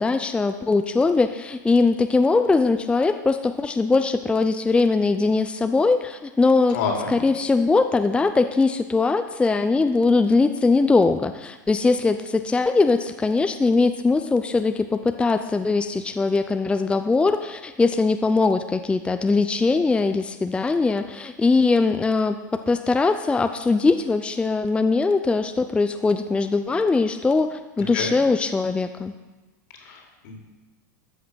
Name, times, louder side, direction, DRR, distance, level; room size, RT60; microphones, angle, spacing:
voice 1, 0.0-6.8 7.1-29.1, left 3 dB, 10° left, 8 dB, 0.5 m, -21 dB
voice 2, 6.7-7.1 27.8-28.1 29.8-30.4, left 4 dB, 70° left, 0 dB, 3.5 m, -29 dB
13.5 x 5.9 x 6.3 m, 1.2 s
hypercardioid pair, 105°, 10 cm